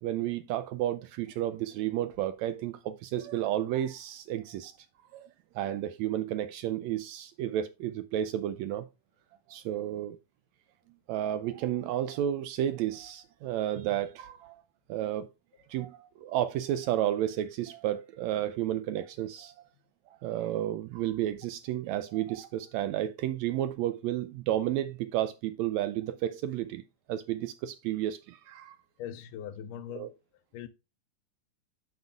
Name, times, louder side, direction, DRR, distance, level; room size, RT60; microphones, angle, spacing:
voice 1, 0.0-4.8 5.1-5.3 5.5-8.9 9.5-10.2 11.1-14.6 14.9-15.3 15.7-19.5 20.1-26.8 27.1-28.8 29.9-30.1, right 12 dB, 85° right, 1.6 m, -32 dB
voice 2, 29.0-30.1 30.5-30.7, left 10 dB, 85° left, 2.2 m, -40 dB
9.2 x 7.7 x 2.3 m
omnidirectional pair, 3.7 m